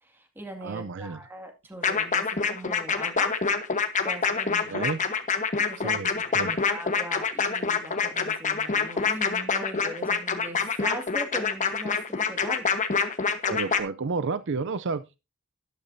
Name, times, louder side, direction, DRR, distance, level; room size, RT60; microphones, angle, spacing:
voice 1, 0.0-3.4 4.0-4.9 5.6-6.0 6.3-12.7, right 1 dB, 10° right, 4 dB, 2.2 m, -40 dB
voice 2, 0.6-1.2 4.5-5.0 5.8-6.6 13.5-15.2, right 4 dB, 55° right, 14 dB, 0.6 m, -31 dB
sound 1, 1.8-13.8, left 5 dB, 35° left, 1.2 m, -26 dB
12.5 x 11.5 x 2.7 m, 0.26 s
head